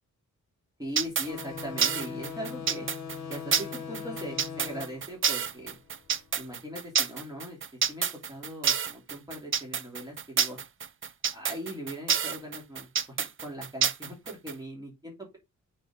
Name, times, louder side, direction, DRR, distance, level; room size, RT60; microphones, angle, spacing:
voice 1, 0.8-2.9 3.3-5.8 6.3-10.6 11.3-15.4, equal, 10° right, -1 dB, 2.8 m, -40 dB
sound 1, 1.0-14.5, right 7 dB, 40° right, 0.5 m, -28 dB
sound 2, 1.3-6.4, left 6 dB, 60° left, 1.0 m, -41 dB
6.1 x 4.8 x 3.6 m, 0.21 s
wide cardioid pair, 140°, 31 cm